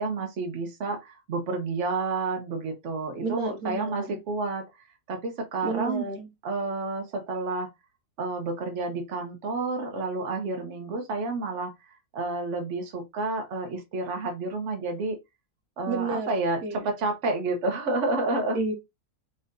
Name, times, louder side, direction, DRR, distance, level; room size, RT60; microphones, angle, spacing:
voice 1, 0.0-4.6 5.1-6.1 6.4-7.7 8.2-15.2 15.8-18.6, right 3 dB, 55° right, 1.3 m, -30 dB
voice 2, 3.2-4.2 5.6-6.3 15.9-16.3 16.6-16.9 18.5-18.7, right 3 dB, 85° right, 1.4 m, -31 dB
4.0 x 3.9 x 2.6 m
omnidirectional pair, 1.6 m